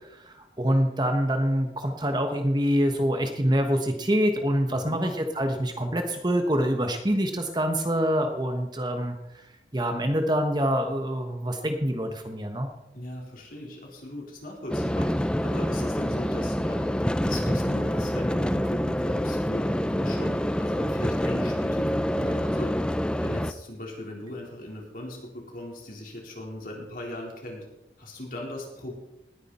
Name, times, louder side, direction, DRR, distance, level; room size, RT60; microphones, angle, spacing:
voice 1, 0.3-9.2 9.7-12.7, equal, 25° right, 5 dB, 1.2 m, -25 dB
voice 2, 4.7-5.1 12.9-22.7 23.2-27.6 28.0-28.9, left 1 dB, 50° left, -2 dB, 4.2 m, -39 dB
sound 1, 14.7-23.5, equal, 5° left, 0.4 m, -26 dB
19.5 x 9.8 x 4.3 m, 0.90 s
head